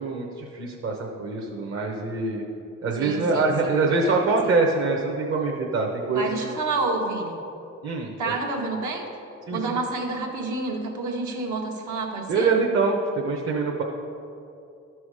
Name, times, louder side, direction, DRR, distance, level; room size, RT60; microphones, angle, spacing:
voice 1, 0.0-2.4 2.8-6.3 7.8-8.1 9.5-9.8 12.3-13.8, right 3 dB, 50° right, -1 dB, 1.1 m, -24 dB
voice 2, 3.0-4.5 6.1-7.4 8.2-9.1 9.5-12.5, right 3 dB, 75° right, 0 dB, 1.6 m, -29 dB
12.0 x 6.1 x 4.9 m, 2.7 s
cardioid pair, 90°, 30 cm